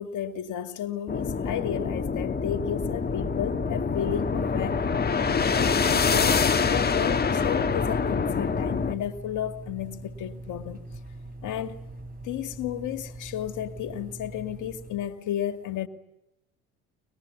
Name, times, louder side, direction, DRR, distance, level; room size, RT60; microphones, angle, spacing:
voice 1, 0.0-4.9 5.5-10.8 11.4-11.8 12.2-15.9, left 10 dB, 60° left, 2.4 m, -33 dB
sound 1, 1.1-8.9, left 5 dB, 30° left, 1.8 m, -25 dB
sound 2, 2.7-15.1, right 1 dB, 25° right, 6.1 m, -42 dB
24.5 x 21.0 x 9.7 m
hypercardioid pair, 70°, 34 cm